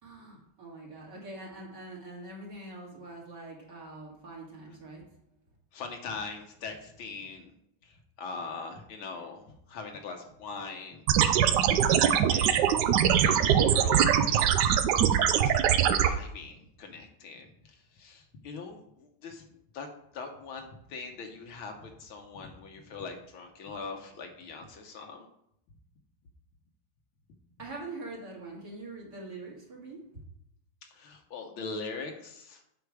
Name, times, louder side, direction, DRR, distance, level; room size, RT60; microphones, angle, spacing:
voice 1, 0.0-5.0 27.6-30.0, right 2 dB, 50° right, -3 dB, 2.8 m, -43 dB
voice 2, 5.7-7.5 7.8-11.0 11.8-12.0 12.3-12.8 13.2-14.8 16.1-19.5 19.7-19.9 20.1-25.3 30.8-32.6, left 4 dB, 70° left, 4 dB, 1.8 m, -41 dB
sound 1, 11.1-16.1, right 9 dB, 75° right, 1.0 m, -22 dB
8.0 x 6.1 x 4.9 m, 0.75 s
omnidirectional pair, 2.4 m